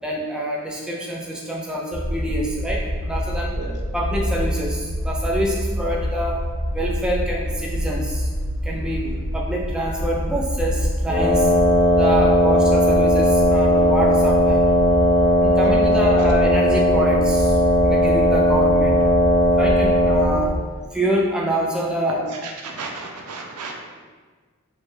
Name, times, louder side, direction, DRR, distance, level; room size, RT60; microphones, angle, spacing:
voice 1, 0.0-3.5 3.9-6.4 6.7-8.3 8.6-9.1 9.3-11.5 11.9-14.6 15.4-19.0 19.6-20.6 20.9-22.3, equal, 5° right, -3 dB, 0.3 m, -26 dB
sound 1, 1.9-20.6, equal, 60° left, 0.6 m, -26 dB
Wind instrument woodwind instrument, 11.1-20.4, equal, 30° left, 0.8 m, -17 dB
voice 2, 22.3-23.7, right 4 dB, 90° right, 1 dB, 0.6 m, -34 dB
4.4 x 2.3 x 3.2 m, 1.5 s
head